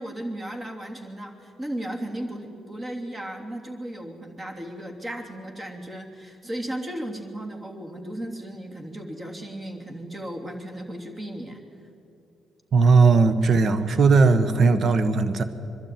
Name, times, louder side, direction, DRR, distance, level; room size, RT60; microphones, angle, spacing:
voice 1, 0.0-11.6, right 1 dB, 30° right, 2 dB, 3.1 m, -35 dB
voice 2, 12.7-15.4, right 4 dB, 55° right, 11 dB, 1.3 m, -18 dB
22.5 x 12.5 x 9.5 m, 2.7 s
supercardioid pair, 65°, 0 cm